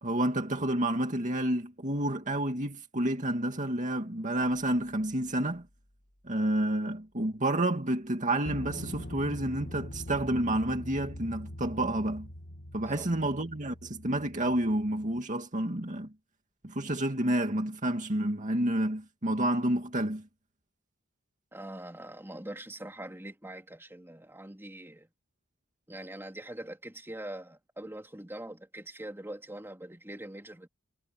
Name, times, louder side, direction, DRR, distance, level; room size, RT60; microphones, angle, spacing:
voice 1, 0.0-5.7 6.2-12.3 12.7-16.1 16.6-20.3, right 1 dB, 40° right, 2.3 m, -29 dB
sound 1, 4.6-4.7 8.5-15.2, left 1 dB, 50° left, 2.3 m, -43 dB
voice 2, 21.5-25.1 25.9-30.7, right 1 dB, 10° right, 3.0 m, -43 dB
head